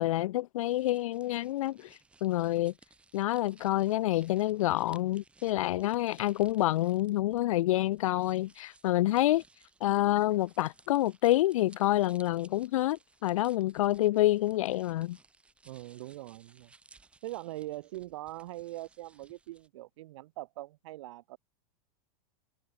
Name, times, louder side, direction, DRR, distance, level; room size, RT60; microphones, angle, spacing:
voice 1, 0.0-2.7 3.1-9.4 9.8-15.2, left 15 dB, 60° left, 0.4 m, -28 dB
sound 1, 0.6-19.7, right 3 dB, 5° right, 4.8 m, -61 dB
voice 2, 15.7-16.7 17.2-21.4, right 17 dB, 50° right, 2.1 m, -42 dB
supercardioid pair, 180°, 19 cm